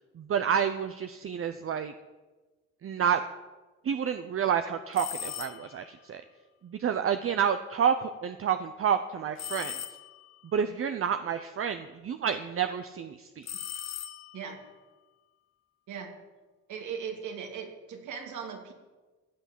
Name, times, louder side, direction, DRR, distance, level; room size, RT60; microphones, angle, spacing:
voice 1, 0.2-1.9 2.8-3.2 3.8-6.2 6.6-9.8 10.5-13.5, right 8 dB, 45° right, 9 dB, 0.8 m, -29 dB
sound 1, 4.9-5.9 9.4-10.4 13.4-14.6, left 9 dB, 60° left, 1.2 m, -39 dB
voice 2, 16.7-18.7, right 7 dB, 75° right, 3 dB, 2.8 m, -38 dB
16.0 x 8.3 x 7.5 m, 1.2 s
cardioid pair, 90°, 30 cm